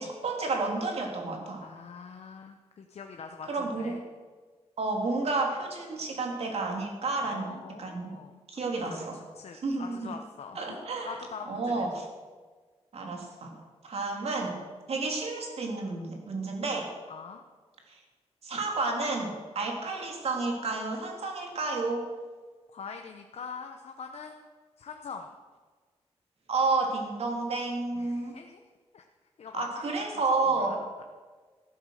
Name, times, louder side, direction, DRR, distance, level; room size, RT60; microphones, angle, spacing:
voice 1, 0.0-1.6 3.5-4.0 4.8-8.1 8.5-9.2 9.6-10.1 10.5-11.2 11.5-12.0 12.9-13.5 13.8-14.6 14.9-16.9 17.9-18.0 18.4-22.1 26.5-28.3 29.5-30.7, right 3 dB, 65° right, 1 dB, 3.0 m, -31 dB
voice 2, 1.6-4.0 7.2-8.4 8.7-11.9 17.1-17.4 22.7-25.3 28.0-28.6 28.9-29.1 29.4-30.8, left 5 dB, 70° left, 4 dB, 0.9 m, -44 dB
14.5 x 11.5 x 6.5 m, 1.4 s
wide cardioid pair, 150°, 11 cm